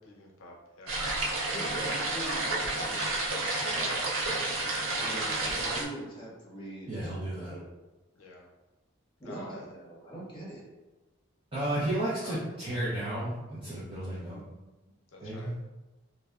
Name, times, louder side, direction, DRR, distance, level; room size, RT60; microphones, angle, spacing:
voice 1, 0.0-0.9 8.2-8.4 9.2-9.6 12.2-12.5 15.1-15.5, left 1 dB, 85° left, -1 dB, 0.6 m, -48 dB
sound 1, 0.9-5.8, right 2 dB, 85° right, 0.5 m, -30 dB
voice 2, 1.5-2.6 2.9-3.0 3.4-4.1 5.0-7.6 9.2-10.6 14.6-14.7, right 1 dB, 25° left, -6 dB, 0.8 m, -42 dB
voice 3, 6.9-7.5 11.5-14.4 15.2-15.5, right 1 dB, 25° right, -10 dB, 0.5 m, -33 dB
2.7 x 2.1 x 2.3 m, 1.1 s
head